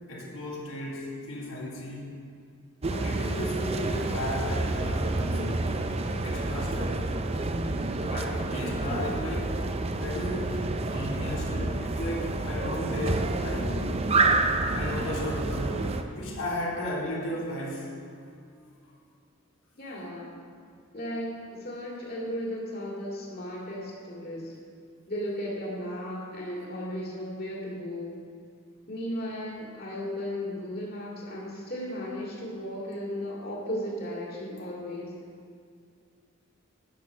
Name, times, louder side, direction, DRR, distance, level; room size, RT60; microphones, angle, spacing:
voice 1, 0.1-2.2 2.9-5.6 6.1-7.0 8.0-9.6 10.0-13.9 14.7-15.8 16.1-17.9 18.2-18.7, left 1 dB, 70° left, -5 dB, 1.9 m, -35 dB
sound 1, 2.8-16.0, right 2 dB, 30° right, 0.5 m, -29 dB
voice 2, 19.8-20.4 20.9-24.5 25.1-28.2 28.9-35.1, equal, 50° left, -4 dB, 2.5 m, -35 dB
11.0 x 6.2 x 6.2 m, 2.3 s
head